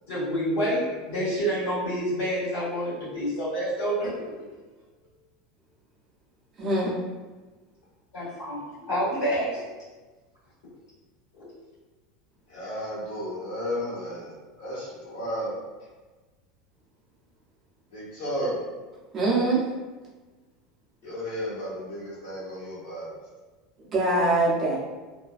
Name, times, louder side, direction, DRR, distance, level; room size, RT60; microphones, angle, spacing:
voice 1, 0.1-4.4 8.1-9.6 11.3-11.4, equal, 60° left, -10 dB, 1.3 m, -28 dB
voice 2, 6.6-7.0 19.1-19.7 23.9-24.8, right 2 dB, 20° right, -6 dB, 0.6 m, -23 dB
voice 3, 12.5-14.3 14.6-15.6 17.9-18.6 21.0-23.1, equal, 85° left, -12 dB, 1.0 m, -33 dB
2.4 x 2.1 x 2.3 m, 1.3 s
supercardioid pair, 170°, 0 cm